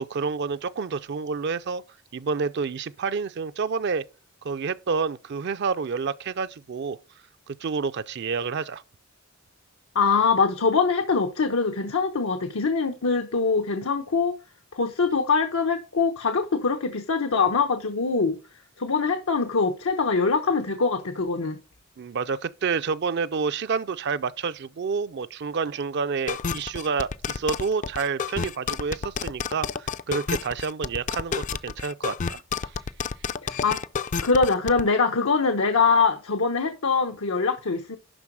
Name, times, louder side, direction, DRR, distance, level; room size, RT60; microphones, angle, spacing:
voice 1, 0.0-1.8 2.1-4.0 4.4-7.0 7.5-8.8 22.0-32.7, right 5 dB, 55° right, 0.4 m, -29 dB
voice 2, 9.9-14.3 14.7-18.4 18.8-21.6 33.4-33.8 34.2-38.0, left 4 dB, 90° left, 1.0 m, -23 dB
sound 1, 26.3-34.8, left 6 dB, 35° left, 0.4 m, -30 dB
11.5 x 4.0 x 6.2 m
head